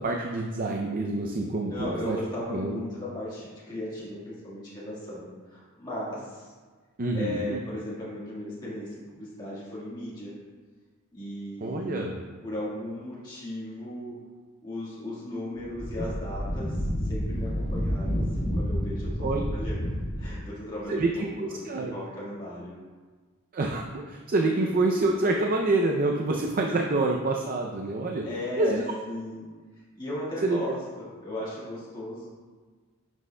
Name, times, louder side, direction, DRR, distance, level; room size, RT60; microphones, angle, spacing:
voice 1, 0.0-2.2 2.5-2.8 7.0-7.6 11.6-12.2 19.2-19.4 20.9-21.9 23.5-28.3 28.6-28.8 30.4-30.6, right 2 dB, 40° right, 1 dB, 0.5 m, -27 dB
voice 2, 1.7-6.5 7.1-10.3 11.1-12.1 12.4-14.1 14.6-19.8 20.2-22.7 24.6-24.7 28.2-28.8 29.1-29.5 29.7-32.3, left 1 dB, 20° left, -9 dB, 1.6 m, -36 dB
Wind, 15.6-20.4, equal, 70° left, 1.7 m, -29 dB
10.5 x 6.1 x 2.2 m, 1.4 s
head